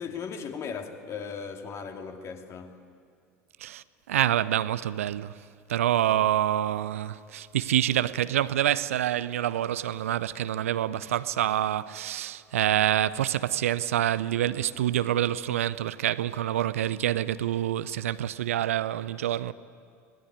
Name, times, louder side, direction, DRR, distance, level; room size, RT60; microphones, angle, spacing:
voice 1, 0.0-2.8, left 6 dB, 35° left, 2.6 m, -37 dB
voice 2, 3.6-5.4 5.7-19.5, right 12 dB, 70° right, 0.6 m, -27 dB
26.5 x 19.5 x 9.6 m
figure-of-eight pair, 70°, 8 cm